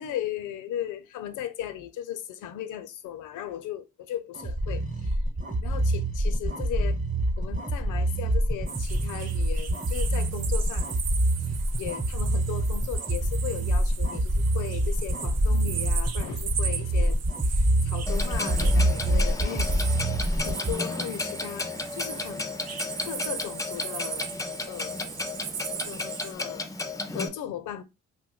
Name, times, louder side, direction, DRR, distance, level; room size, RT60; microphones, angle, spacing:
voice 1, 0.0-5.2 5.6-7.0 7.4-10.9 11.5-20.2 20.4-22.5 23.0-24.3 24.7-25.0 25.9-26.7 27.1-27.8, left 11 dB, 80° left, 0.6 m, -37 dB
sound 1, 4.3-20.7, right 1 dB, 25° right, 0.9 m, -26 dB
sound 2, 8.7-26.3, right 8 dB, 55° right, 0.5 m, -38 dB
Clock, 18.1-27.3, left 3 dB, 10° left, 0.4 m, -33 dB
2.6 x 2.2 x 3.8 m
cardioid pair, 90°, 30 cm